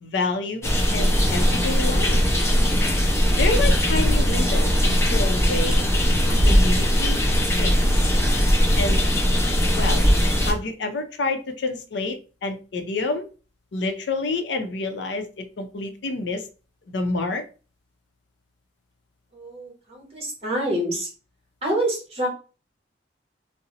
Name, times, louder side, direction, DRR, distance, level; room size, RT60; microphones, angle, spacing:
voice 1, 0.0-2.2 3.4-5.9 6.5-7.2 7.6-7.7 8.8-9.0 9.8-10.0 10.4-13.3 13.7-16.5 16.9-17.4, left 3 dB, 80° left, 7 dB, 0.5 m, -28 dB
sound 1, 0.6-10.5, equal, 15° left, 0.7 m, -19 dB
voice 2, 19.3-21.1 21.6-22.3, right 1 dB, 35° right, 0 dB, 1.0 m, -27 dB
2.7 x 2.0 x 3.7 m, 0.34 s
head